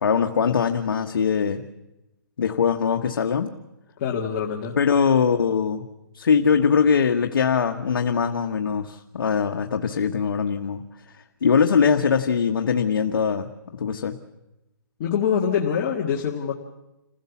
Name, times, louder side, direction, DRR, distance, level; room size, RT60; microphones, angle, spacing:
voice 1, 0.0-1.6 2.4-3.5 4.8-5.8 6.1-10.8 11.4-13.5 13.8-14.2, left 6 dB, 75° left, 4 dB, 1.3 m, -21 dB
voice 2, 4.0-4.8 15.0-16.5, left 7 dB, 30° left, 0 dB, 1.7 m, -24 dB
27.5 x 15.5 x 7.1 m, 0.95 s
hypercardioid pair, 160°, 12 cm